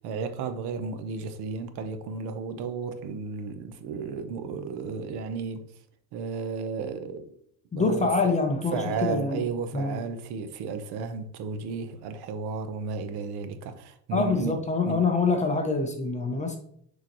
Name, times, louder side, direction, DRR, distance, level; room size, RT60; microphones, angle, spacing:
voice 1, 0.0-5.6 6.1-7.2 7.7-8.3 8.7-14.5 14.8-15.0, right 5 dB, 60° right, 0.9 m, -33 dB
voice 2, 7.7-9.4 9.7-10.0 14.1-16.6, left 4 dB, 15° left, 0.6 m, -25 dB
6.5 x 4.9 x 3.0 m
cardioid pair, 155°, 43 cm